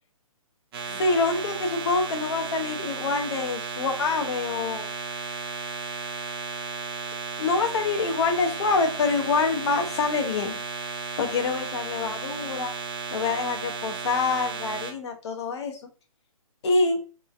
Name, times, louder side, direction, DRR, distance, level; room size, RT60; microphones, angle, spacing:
sound 1, 0.7-14.9, right 4 dB, 40° right, 0.7 m, -34 dB
voice 1, 0.8-4.9 7.4-10.6 11.2-12.7 13.1-15.8 16.6-17.0, left 4 dB, 45° left, 5 dB, 0.6 m, -26 dB
3.0 x 2.2 x 2.3 m, 0.35 s
hypercardioid pair, 150°, 19 cm